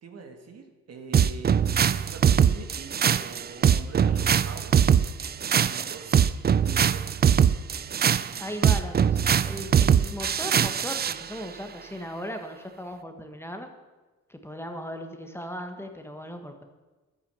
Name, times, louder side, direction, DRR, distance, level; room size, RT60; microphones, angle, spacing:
voice 1, 0.0-4.8 5.5-6.1 6.6-7.1, right 4 dB, 55° right, 5 dB, 2.1 m, -44 dB
sound 1, 1.1-11.2, right 8 dB, 35° right, 0.5 m, -22 dB
voice 2, 8.4-13.7 14.3-16.6, equal, 10° left, 5 dB, 1.4 m, -37 dB
11.0 x 8.8 x 6.9 m, 1.2 s
cardioid pair, 90°, 30 cm